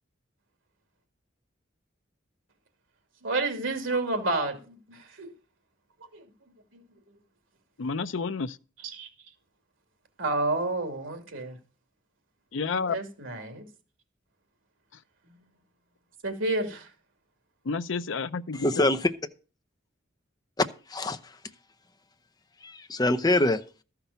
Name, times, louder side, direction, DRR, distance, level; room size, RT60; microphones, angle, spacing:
voice 1, 3.2-5.3 6.1-6.2 8.8-9.1 10.2-11.6 12.9-13.7 15.3-15.4 16.2-16.9, right 2 dB, 85° right, 2.8 m, -30 dB
voice 2, 7.8-8.6 12.5-13.0 17.7-18.7, left 4 dB, 75° left, 0.6 m, -30 dB
voice 3, 18.5-19.1 20.6-21.3 22.6-23.6, left 2 dB, 20° left, 0.7 m, -25 dB
13.5 x 5.8 x 6.8 m
head